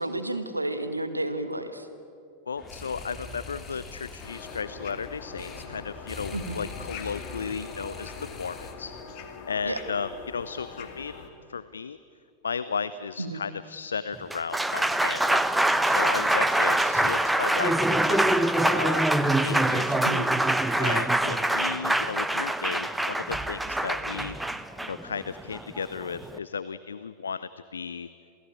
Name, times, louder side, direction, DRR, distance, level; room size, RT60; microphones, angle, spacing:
voice 1, 0.0-1.9 6.3-6.6 9.6-9.8 13.2-13.4 20.0-20.3, right 1 dB, 85° right, 9 dB, 1.7 m, -31 dB
voice 2, 2.5-8.9 9.5-11.1 11.5-12.0 12.4-15.4 15.8-19.1 19.4-20.3 20.8-24.4 24.9-28.1, left 6 dB, 70° left, 15 dB, 0.6 m, -34 dB
sound 1, 2.6-9.0, left 3 dB, 20° left, 2.6 m, -43 dB
sound 2, 4.2-11.3, left 5 dB, 45° left, 2.6 m, -43 dB
Applause, 14.1-26.4, right 1 dB, 5° right, 1.0 m, -24 dB
28.5 x 18.0 x 8.8 m, 2.6 s
figure-of-eight pair, 90°, 0 cm